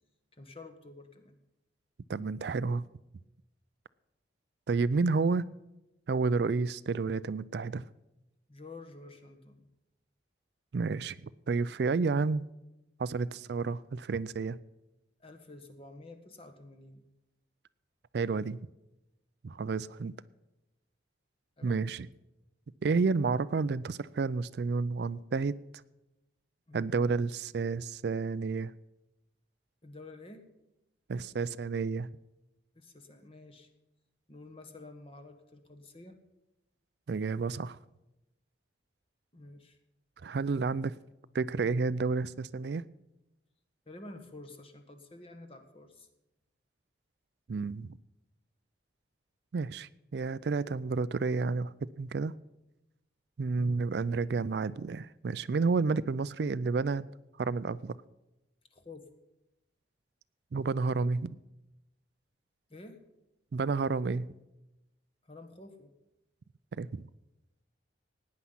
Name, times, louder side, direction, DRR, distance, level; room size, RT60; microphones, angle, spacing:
voice 1, 0.3-1.3 8.5-9.7 15.2-17.0 21.6-21.9 26.7-26.9 29.8-30.4 32.7-33.7 34.3-36.2 39.3-39.8 43.9-46.1 53.6-53.8 58.7-59.1 62.7-63.0 65.2-65.9, left 2 dB, 30° left, 1.4 m, -50 dB
voice 2, 2.1-2.8 4.7-5.5 6.1-7.8 10.7-12.4 13.0-14.6 18.1-18.6 19.4-20.1 21.6-22.1 22.8-25.6 26.7-28.7 31.1-32.1 37.1-37.8 40.2-40.9 41.3-42.8 47.5-48.0 49.5-52.3 53.4-57.1 57.4-58.0 60.5-61.4 63.5-64.3 66.8-67.0, right 4 dB, 60° right, 0.4 m, -30 dB
17.0 x 9.7 x 5.7 m
head